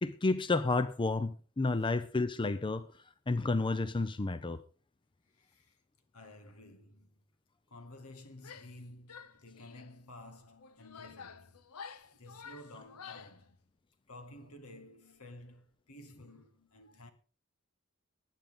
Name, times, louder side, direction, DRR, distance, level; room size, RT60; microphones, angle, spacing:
voice 1, 0.0-2.9 3.3-4.6, left 3 dB, 20° left, 0.5 m, -31 dB
voice 2, 5.3-5.8 6.1-7.2 7.7-11.6 12.1-13.6 14.1-17.1, left 1 dB, 75° left, 2.1 m, -53 dB
Female speech woman speaking / Yell, 8.4-8.8 9.1-10.0 10.6-13.4, left 6 dB, 90° left, 0.9 m, -50 dB
19.5 x 9.1 x 3.7 m
head